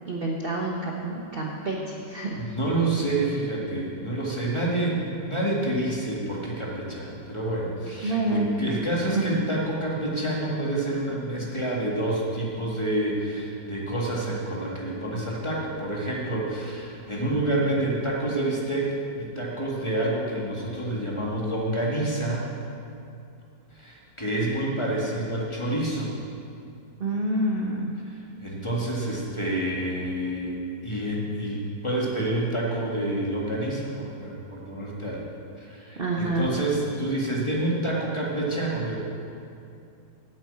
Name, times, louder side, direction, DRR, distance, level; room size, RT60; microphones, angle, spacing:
voice 1, 0.1-2.4 8.0-8.8 9.2-9.3 27.0-27.9 36.0-36.5, right 2 dB, 40° right, -1 dB, 0.9 m, -27 dB
voice 2, 2.3-22.5 23.7-26.1 28.4-30.6 30.8-35.2 35.6-38.9, right 1 dB, 15° left, -4 dB, 1.7 m, -28 dB
8.8 x 8.1 x 8.4 m, 2.6 s
omnidirectional pair, 2.0 m